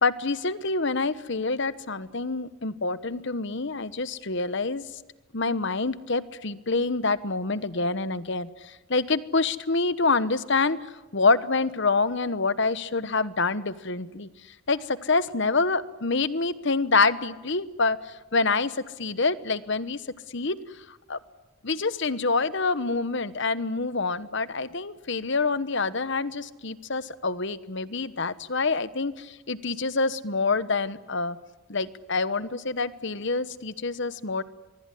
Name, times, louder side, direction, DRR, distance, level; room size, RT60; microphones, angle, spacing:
voice 1, 0.0-4.8 5.3-14.3 14.7-20.0 20.3-20.6 21.1-21.2 21.6-31.4 31.7-34.4, left 3 dB, 55° left, 15 dB, 1.1 m, -26 dB
24.5 x 23.0 x 9.8 m, 1.1 s
head